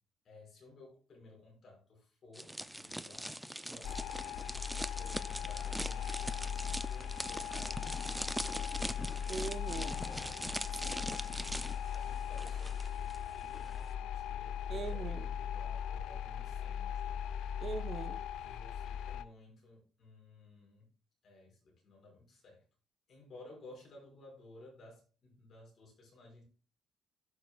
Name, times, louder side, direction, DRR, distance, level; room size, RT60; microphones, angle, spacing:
voice 1, 0.2-4.2 4.8-7.8 8.2-9.1 9.9-10.6 11.7-17.3 18.4-20.9 21.2-22.6 23.1-26.4, left 2 dB, 45° left, -1 dB, 5.3 m, -57 dB
sound 1, 2.3-13.2 13.4-13.7, right 1 dB, 5° right, 0.3 m, -42 dB
sound 2, 3.8-19.2, left 8 dB, 85° left, 0.5 m, -39 dB
sound 3, 5.5-12.9, right 7 dB, 75° right, 3.2 m, -62 dB
voice 2, 9.3-10.0 10.7-10.8 14.7-15.3 17.6-18.2, right 5 dB, 45° right, 9 dB, 0.9 m, -41 dB
16.0 x 6.8 x 2.3 m, 0.34 s
cardioid pair, 145°, 0 cm